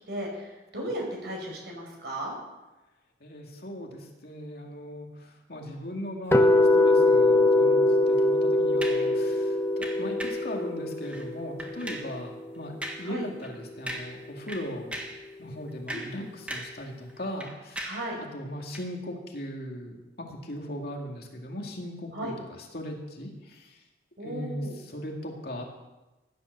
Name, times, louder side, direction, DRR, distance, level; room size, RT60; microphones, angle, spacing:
voice 1, 0.1-2.3 13.0-13.2 15.9-16.3 17.8-18.2 22.1-22.3 24.2-24.8, right 1 dB, 65° right, -1 dB, 5.5 m, -35 dB
voice 2, 3.2-14.9 15.4-17.8 18.2-20.0 20.3-22.3 22.7-23.7 24.2-25.6, equal, 55° left, 1 dB, 2.4 m, -38 dB
sound 1, 6.3-12.4, left 2 dB, 15° left, 0.8 m, -23 dB
sound 2, 8.8-9.1 9.8-10.5 11.0-11.3 11.6-12.1 12.8-13.1 13.4-13.6 13.9-14.2 14.5-15.2 15.7-16.8 17.1-18.1 18.7-18.9, right 1 dB, 5° right, 1.6 m, -38 dB
15.5 x 9.5 x 6.8 m, 1.1 s
head